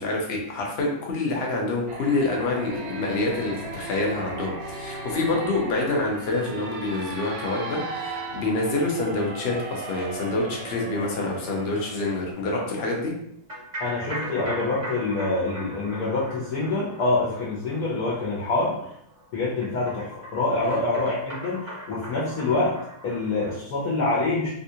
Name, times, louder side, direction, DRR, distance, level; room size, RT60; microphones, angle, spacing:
voice 1, 0.0-13.1 20.6-20.7, left 2 dB, 50° left, -1 dB, 0.8 m, -27 dB
sound 1, 1.9-12.3, right 2 dB, 70° right, 1.0 m, -37 dB
sound 2, 13.5-23.5, right 1 dB, 40° right, 0.8 m, -39 dB
voice 2, 13.8-18.9 19.3-22.7 23.0-24.5, left 2 dB, 70° left, -5 dB, 1.2 m, -26 dB
3.6 x 2.3 x 2.7 m, 0.75 s
omnidirectional pair, 1.7 m